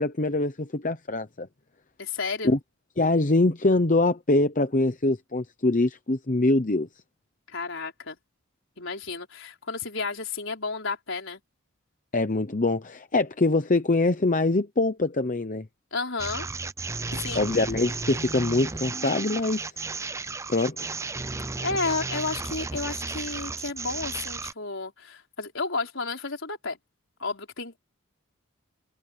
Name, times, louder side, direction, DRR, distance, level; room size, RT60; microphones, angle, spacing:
voice 1, 0.0-1.5 2.4-2.6 3.0-6.9 12.1-15.7 17.4-19.6 20.5-20.9, left 2 dB, 35° left, 0.9 m, -24 dB
voice 2, 2.0-2.5 7.5-8.2 8.8-11.4 15.9-16.5 17.1-17.5 21.6-26.8 27.2-27.8, left 4 dB, 60° left, 5.3 m, -32 dB
sound 1, 16.2-24.5, right 3 dB, 15° right, 0.5 m, -33 dB
head